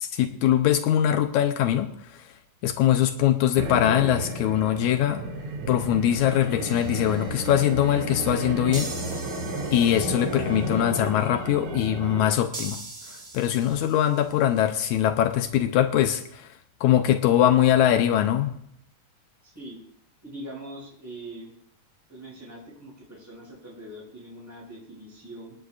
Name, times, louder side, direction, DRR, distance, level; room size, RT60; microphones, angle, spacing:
voice 1, 0.0-2.2 2.6-5.2 5.7-8.9 9.7-12.8 13.3-16.5 16.8-18.6, left 11 dB, 80° left, 7 dB, 2.1 m, -22 dB
sound 1, 3.6-12.3, right 2 dB, 75° right, 3.1 m, -32 dB
sound 2, 6.7-7.6 8.7-10.6 12.5-14.4, right 2 dB, 30° right, 1.2 m, -41 dB
voice 2, 19.4-19.8 20.2-21.5 22.1-25.5, right 1 dB, 5° right, -5 dB, 6.4 m, -42 dB
27.0 x 10.5 x 2.5 m, 0.71 s
omnidirectional pair, 3.4 m